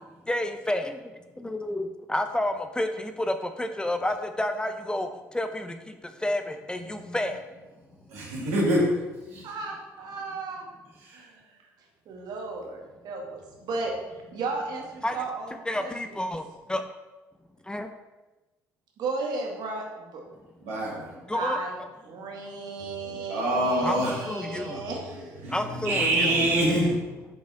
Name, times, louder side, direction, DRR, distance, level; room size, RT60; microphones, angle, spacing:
voice 1, 0.3-0.9 1.4-7.4 15.0-15.2 15.7-16.8 17.6-17.9 21.2-21.6 23.8-24.8 25.5-26.4, left 1 dB, 10° left, 7 dB, 0.6 m, -30 dB
voice 2, 8.1-8.9 9.3-9.5 11.1-11.2 20.6-21.1 23.0-24.1 24.4-24.8 25.4-27.0, right 1 dB, 85° right, -5 dB, 2.1 m, -26 dB
voice 3, 9.4-10.7 11.1-16.2 19.0-20.2 21.3-21.8 22.0-25.3, right 3 dB, 60° right, 1 dB, 1.5 m, -35 dB
6.8 x 4.2 x 3.8 m, 1.1 s
hypercardioid pair, 65°, 8 cm